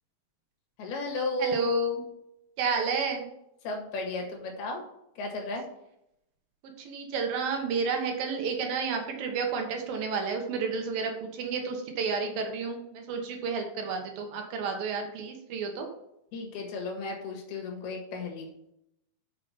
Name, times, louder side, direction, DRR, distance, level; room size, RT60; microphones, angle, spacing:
voice 1, 0.8-1.7 3.6-4.8 5.2-5.7 16.3-18.5, left 2 dB, 85° left, 2 dB, 3.6 m, -34 dB
voice 2, 1.4-2.1 2.6-3.3 6.8-15.9, right 4 dB, 70° right, 4 dB, 2.9 m, -31 dB
6.6 x 6.0 x 5.7 m, 0.80 s
omnidirectional pair, 4.4 m